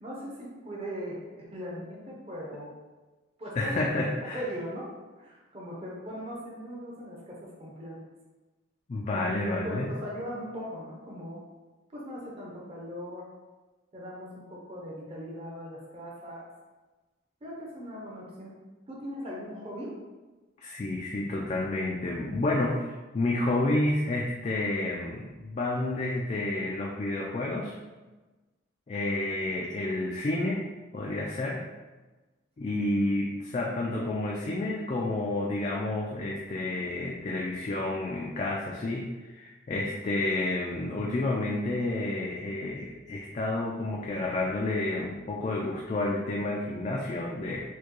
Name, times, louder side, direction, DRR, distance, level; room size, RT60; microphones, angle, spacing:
voice 1, 0.0-2.7 3.4-3.8 4.3-4.9 5.2-8.0 9.1-11.4 11.9-13.3 13.9-16.5 17.4-18.5 18.9-19.9, equal, 30° right, -4 dB, 0.7 m, -39 dB
voice 2, 3.6-4.4 8.9-9.9 20.6-27.8 28.9-30.6 30.9-31.6 32.6-47.6, left 2 dB, 35° left, -2 dB, 0.3 m, -30 dB
4.4 x 2.2 x 3.0 m, 1.2 s
head